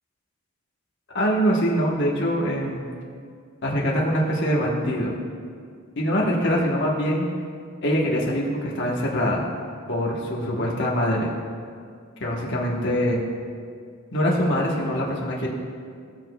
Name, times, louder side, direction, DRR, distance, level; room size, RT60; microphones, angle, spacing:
voice 1, 1.1-2.9 3.6-5.2 6.0-7.3 7.8-9.4 9.9-11.3 12.2-13.2 14.1-15.5, equal, 55° left, -3 dB, 1.2 m, -23 dB
17.5 x 6.7 x 2.3 m, 2.1 s
head